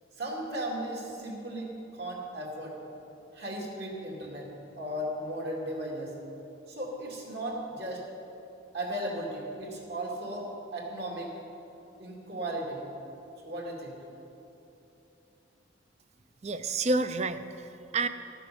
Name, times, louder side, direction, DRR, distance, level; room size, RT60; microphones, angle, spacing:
voice 1, 0.2-2.8 3.3-4.5 4.8-6.1 6.7-8.0 8.7-11.3 12.0-12.8 13.5-14.0, right 1 dB, 55° right, -2 dB, 2.6 m, -36 dB
voice 2, 16.4-18.1, right 3 dB, 35° right, 11 dB, 0.5 m, -29 dB
13.5 x 9.1 x 7.0 m, 2.9 s
head